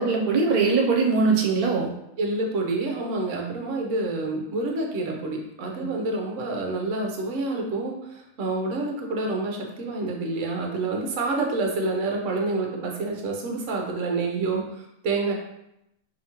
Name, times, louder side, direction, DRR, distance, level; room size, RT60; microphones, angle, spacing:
voice 1, 0.0-1.9 5.8-5.9 14.5-14.6, right 4 dB, 85° right, 0 dB, 1.1 m, -21 dB
voice 2, 2.2-15.3, right 2 dB, 65° right, 1 dB, 1.1 m, -28 dB
4.9 x 2.8 x 2.9 m, 0.83 s
omnidirectional pair, 1.5 m